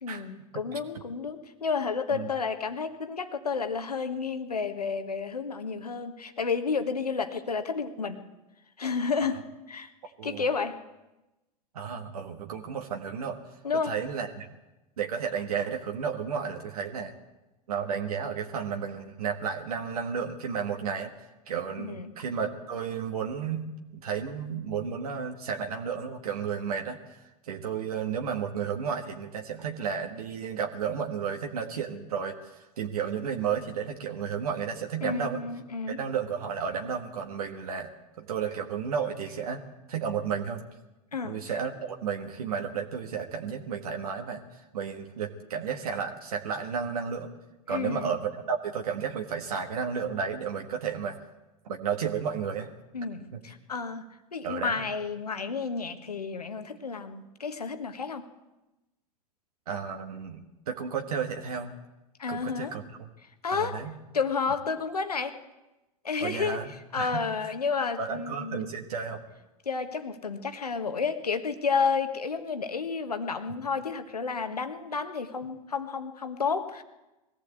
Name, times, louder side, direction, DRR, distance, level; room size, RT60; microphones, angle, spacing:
voice 1, 0.0-8.2 8.8-9.4 9.7-9.9 10.2-10.8 13.6-13.9 21.8-22.1 35.0-36.0 41.1-41.4 47.7-48.1 52.9-54.1 54.3-58.3 62.2-62.7 63.4-63.8 64.1-65.4 66.0-66.6 66.9-68.8 69.6-76.8, left 5 dB, 90° left, 8 dB, 1.4 m, -31 dB
voice 2, 11.7-13.4 13.9-14.5 15.0-17.1 17.7-21.1 21.5-27.2 27.5-35.4 35.9-37.9 38.2-39.6 39.9-40.6 41.2-44.4 44.7-47.3 47.7-51.2 51.7-52.7 54.4-54.9 59.7-61.7 62.3-63.1 63.5-63.9 66.2-67.5 68.0-69.2, right 6 dB, 75° right, 3 dB, 1.6 m, -32 dB
21.0 x 15.5 x 8.2 m, 1.0 s
hypercardioid pair, 80°, 19 cm